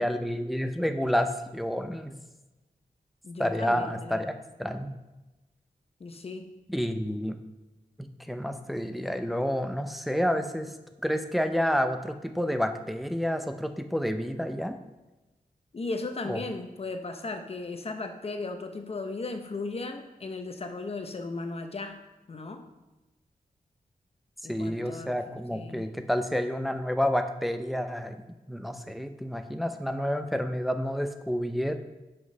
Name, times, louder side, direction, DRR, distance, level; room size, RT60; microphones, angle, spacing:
voice 1, 0.0-2.1 3.4-4.3 4.6-4.9 6.7-7.4 8.0-10.7 11.0-14.7 16.2-16.4 24.5-28.2 28.5-31.8, equal, ahead, 7 dB, 0.5 m, -29 dB
voice 2, 3.2-4.3 6.0-6.5 15.7-22.0 22.3-22.6 24.4-25.2 25.5-25.9, left 3 dB, 40° left, 6 dB, 0.8 m, -36 dB
6.1 x 5.9 x 5.4 m, 1.1 s
wide cardioid pair, 140°, 15 cm